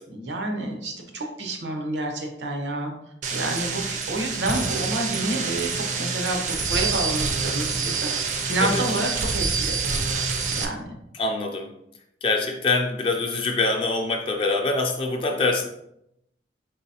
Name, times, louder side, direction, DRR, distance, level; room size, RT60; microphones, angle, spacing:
voice 1, 0.1-2.9 3.3-9.9 10.6-11.0, right 2 dB, 85° right, 3 dB, 0.8 m, -29 dB
sound 1, 3.2-10.7, right 4 dB, 45° right, 0.4 m, -27 dB
voice 2, 11.1-11.7 12.2-15.7, left 3 dB, 30° left, 3 dB, 0.3 m, -24 dB
4.0 x 3.9 x 2.7 m, 0.79 s
head